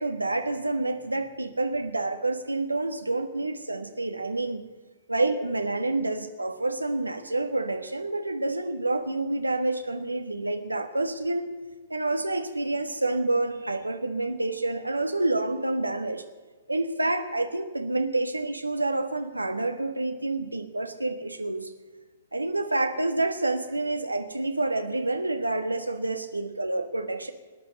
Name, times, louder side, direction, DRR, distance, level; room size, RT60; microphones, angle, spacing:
voice 1, 0.0-4.6 5.1-11.5 11.9-16.2 16.7-21.7 22.3-27.3, right 2 dB, 80° right, 7 dB, 1.4 m, -28 dB
19.5 x 10.0 x 6.6 m, 1.3 s
figure-of-eight pair, 115°, 0 cm